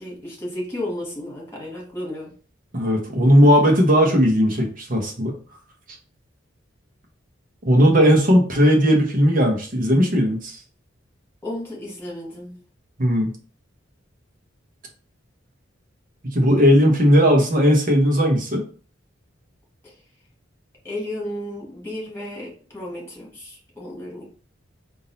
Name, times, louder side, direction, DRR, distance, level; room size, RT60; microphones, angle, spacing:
voice 1, 0.0-2.3 11.4-12.5 19.8-19.9 20.8-24.2, left 1 dB, 15° left, -4 dB, 1.8 m, -33 dB
voice 2, 2.7-5.3 7.6-10.6 13.0-13.3 16.2-18.6, equal, 45° right, 1 dB, 1.2 m, -17 dB
3.8 x 2.7 x 4.0 m, 0.40 s
head